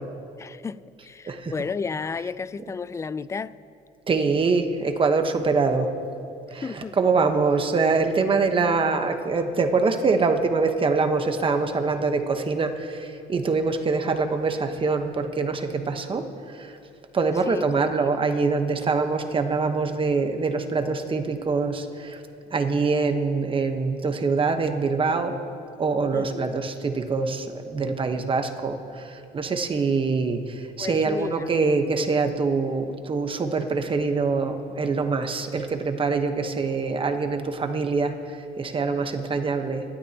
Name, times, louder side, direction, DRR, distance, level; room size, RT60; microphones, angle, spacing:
voice 1, 0.4-3.5 6.6-7.0 17.5-17.7 18.1-18.2 26.1-26.6 30.8-31.5, left 5 dB, 15° left, 17 dB, 0.3 m, -33 dB
voice 2, 4.1-5.9 6.5-16.8 17.1-22.2 22.5-25.4 25.8-39.8, right 4 dB, 30° right, 6 dB, 1.1 m, -24 dB
25.0 x 13.0 x 2.9 m, 2.6 s
cardioid pair, 110°, 17 cm